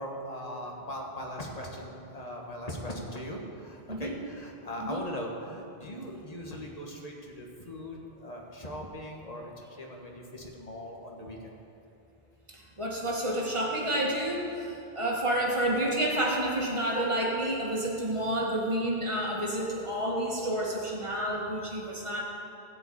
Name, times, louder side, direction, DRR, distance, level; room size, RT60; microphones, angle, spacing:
voice 1, 0.0-11.4, equal, 40° left, 0 dB, 1.5 m, -40 dB
voice 2, 12.5-22.2, right 1 dB, 30° right, -3 dB, 1.9 m, -29 dB
13.5 x 5.1 x 8.6 m, 2.7 s
omnidirectional pair, 1.1 m